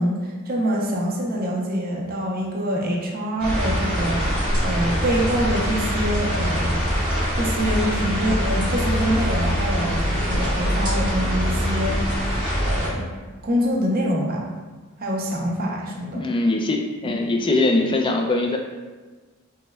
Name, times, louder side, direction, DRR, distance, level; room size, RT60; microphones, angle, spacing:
voice 1, 0.0-6.9 7.3-13.1 13.4-14.5 15.0-16.2 17.0-17.1, equal, 45° right, -2 dB, 0.6 m, -25 dB
The rain falls against the parasol, 3.4-12.9, equal, 25° right, 1.2 m, -23 dB
voice 2, 16.1-18.6, left 2 dB, 25° left, 3 dB, 0.3 m, -21 dB
5.4 x 2.1 x 2.2 m, 1.3 s
head